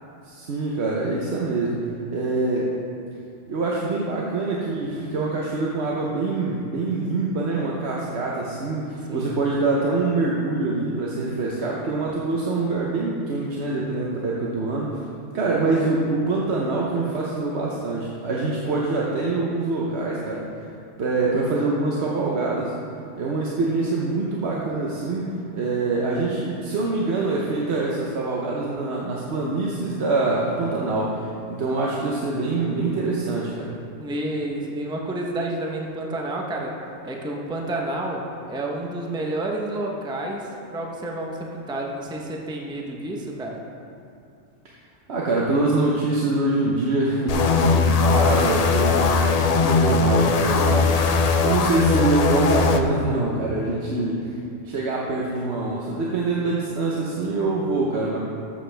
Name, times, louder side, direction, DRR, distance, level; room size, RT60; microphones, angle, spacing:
voice 1, 0.2-2.7 3.5-15.0 15.3-20.4 21.0-22.7 23.2-33.7 45.1-54.3 54.6-58.2, right 3 dB, 60° right, -4 dB, 1.1 m, -25 dB
voice 2, 34.0-36.8 37.0-43.6, right 1 dB, 5° right, -1 dB, 0.7 m, -30 dB
sound 1, 47.3-52.8, left 4 dB, 85° left, 0.3 m, -19 dB
13.0 x 7.6 x 3.4 m, 2.6 s
omnidirectional pair, 1.3 m